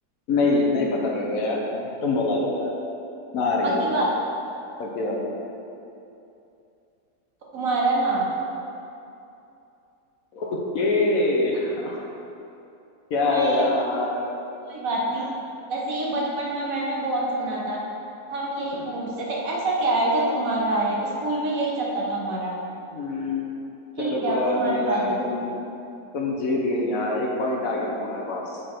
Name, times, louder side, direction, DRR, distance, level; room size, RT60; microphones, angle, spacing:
voice 1, 0.3-2.7 3.3-3.8 4.8-5.2 10.3-12.0 13.1-14.3 18.7-18.8 22.9-23.5 24.0-25.5 26.1-28.6, left 2 dB, 60° left, -2 dB, 1.2 m, -25 dB
voice 2, 3.6-4.1 7.5-8.3 13.2-13.6 14.7-15.2 15.7-17.8 18.3-22.5 24.0-25.1, right 2 dB, 60° right, -3 dB, 1.4 m, -26 dB
6.4 x 5.3 x 4.4 m, 2.8 s
omnidirectional pair, 1.7 m